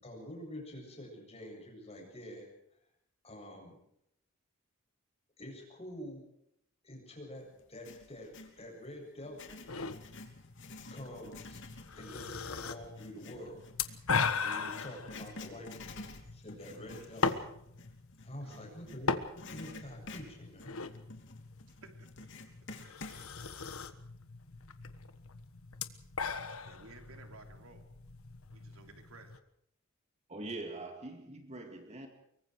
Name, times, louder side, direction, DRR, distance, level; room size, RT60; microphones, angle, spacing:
voice 1, 0.0-2.5 3.2-3.8 5.4-6.2 6.8-9.6 10.9-11.6 11.9-13.6 13.9-14.0 14.4-16.0 16.3-17.4 18.2-20.8, left 1 dB, 30° left, 7.8 m, -47 dB
Writing, 7.6-8.6 9.2-19.0 19.4-23.2, left 3 dB, 60° left, 3.1 m, -50 dB
sound 1, 9.7-29.4, left 5 dB, 85° left, 1.5 m, -39 dB
voice 2, 17.0-17.4 18.4-18.7 21.7-22.3 26.5-27.8 28.5-29.3, right 3 dB, 85° right, 3.3 m, -56 dB
voice 3, 30.3-32.1, right 2 dB, 30° right, 2.3 m, -43 dB
24.5 x 23.0 x 4.8 m
head